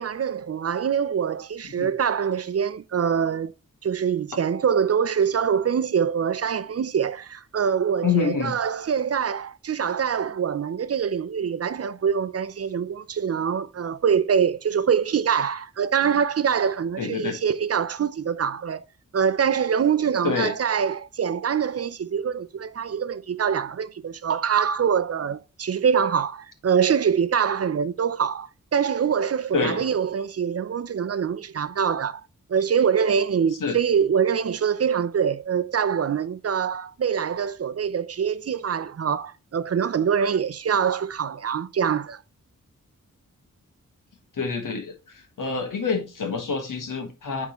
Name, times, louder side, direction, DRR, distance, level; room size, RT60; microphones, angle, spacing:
voice 1, 0.0-3.5 3.8-18.8 19.1-32.2 32.5-42.2, right 7 dB, 50° right, 0.5 m, -24 dB
voice 2, 8.0-8.5 17.0-17.4 20.2-20.5 29.5-29.8 33.6-33.8 44.4-44.9 45.4-47.5, left 5 dB, 85° left, 1.5 m, -26 dB
9.1 x 3.7 x 3.0 m
wide cardioid pair, 80°, 31 cm